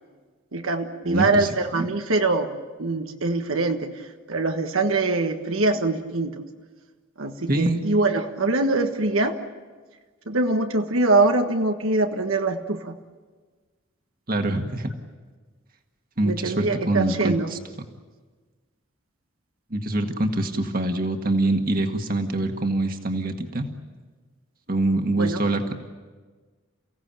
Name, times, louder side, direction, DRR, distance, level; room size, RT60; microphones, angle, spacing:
voice 1, 0.5-2.5 2.8-3.9 4.3-6.4 7.2-9.4 10.3-13.0 16.2-17.5 25.2-25.4, right 2 dB, 85° right, 5 dB, 1.5 m, -23 dB
voice 2, 1.0-1.5 1.7-1.9 7.5-7.8 14.3-14.9 16.2-17.6 19.7-23.7 24.7-25.7, right 2 dB, 45° right, 5 dB, 1.8 m, -24 dB
29.5 x 17.0 x 8.9 m, 1.4 s
head